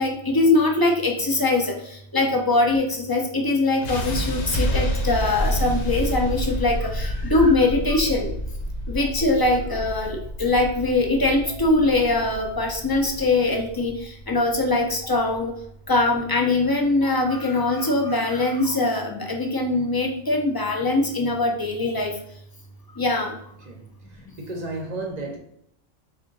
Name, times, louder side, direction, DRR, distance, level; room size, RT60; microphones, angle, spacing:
voice 1, 0.0-1.7 2.1-8.3 8.9-13.9 14.3-15.5 15.9-22.1 23.0-23.3, left 2 dB, 35° left, 0.4 m, -22 dB
sound 1, 3.8-15.9, equal, 85° left, 1.0 m, -29 dB
voice 2, 23.6-25.4, right 2 dB, 45° right, 0.6 m, -34 dB
3.6 x 2.4 x 3.8 m
omnidirectional pair, 1.1 m